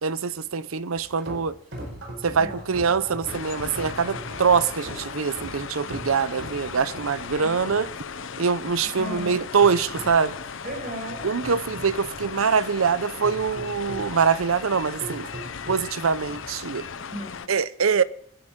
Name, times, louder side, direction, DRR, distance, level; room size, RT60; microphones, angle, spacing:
voice 1, 0.0-1.6 2.2-7.9 8.4-10.3 11.2-15.3 15.7-16.9 17.5-18.0, right 6 dB, 85° right, 0.7 m, -24 dB
sound 1, 1.0-16.7, right 1 dB, 60° right, 4.6 m, -41 dB
voice 2, 2.3-2.8 7.3-7.8 8.9-9.4 10.6-11.3 17.1-17.5, equal, 45° right, 6.2 m, -36 dB
sound 2, 3.3-17.5, left 6 dB, 70° left, 0.7 m, -37 dB
25.5 x 10.5 x 3.7 m
head